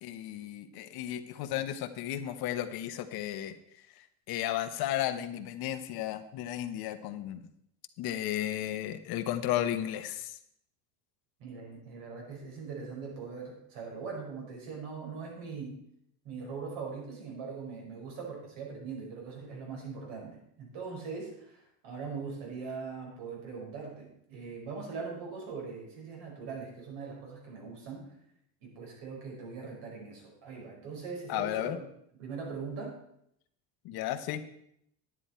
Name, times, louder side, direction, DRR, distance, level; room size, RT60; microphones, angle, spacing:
voice 1, 0.0-3.5 4.0-7.5 8.0-10.4 31.3-31.8 33.8-34.4, left 12 dB, 55° left, 9 dB, 1.0 m, -34 dB
voice 2, 11.4-15.8 16.2-28.1 28.6-31.8 32.2-32.9, right 5 dB, 70° right, -1 dB, 5.3 m, -41 dB
10.5 x 9.7 x 4.4 m, 0.73 s
supercardioid pair, 120°, 45 cm